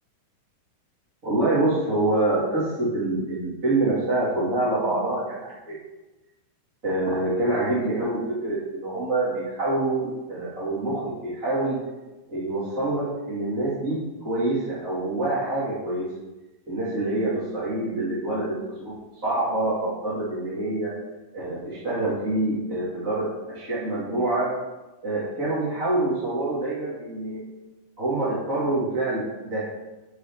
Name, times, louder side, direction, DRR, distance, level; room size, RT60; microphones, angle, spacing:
voice 1, 1.2-5.8 6.8-11.8 12.3-16.1 16.7-19.0 19.2-20.9 21.3-24.5 25.0-27.4 28.0-29.7, right 2 dB, 25° right, -9 dB, 2.4 m, -26 dB
9.9 x 4.9 x 6.1 m, 1.1 s
omnidirectional pair, 3.9 m